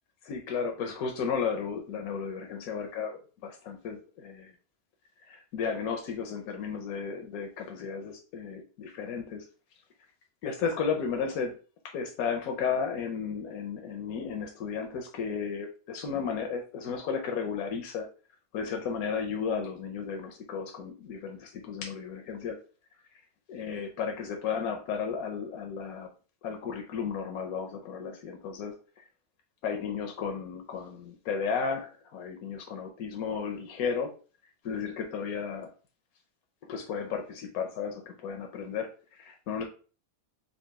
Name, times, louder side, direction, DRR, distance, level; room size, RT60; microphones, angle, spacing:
voice 1, 0.2-4.5 5.3-9.4 10.4-11.5 11.9-18.1 18.5-22.6 23.5-26.1 26.4-29.0 29.6-34.1 34.6-35.7 36.6-39.6, left 6 dB, 85° left, 4 dB, 1.2 m, -34 dB
4.2 x 2.6 x 4.6 m, 0.37 s
omnidirectional pair, 1.5 m